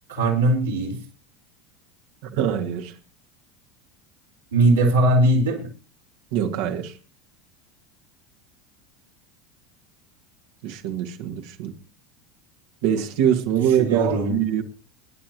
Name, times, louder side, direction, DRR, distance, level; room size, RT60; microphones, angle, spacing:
voice 1, 0.1-1.0 4.5-5.7 13.8-14.3, right 2 dB, 80° right, 4.6 m, -19 dB
voice 2, 2.3-2.9 6.3-6.9 10.6-11.7 12.8-14.6, right 9 dB, 65° right, 2.0 m, -23 dB
26.0 x 10.5 x 3.1 m
hypercardioid pair, 80°, 0 cm